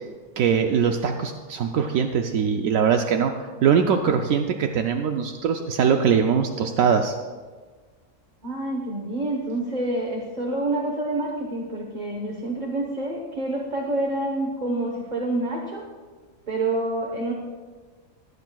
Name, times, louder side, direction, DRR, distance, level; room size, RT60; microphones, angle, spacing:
voice 1, 0.4-3.3 3.6-7.1, right 7 dB, 80° right, 4 dB, 1.0 m, -22 dB
voice 2, 8.4-15.8 16.5-17.3, right 2 dB, 35° right, 0 dB, 1.1 m, -27 dB
18.0 x 9.5 x 2.3 m, 1.4 s
omnidirectional pair, 1.4 m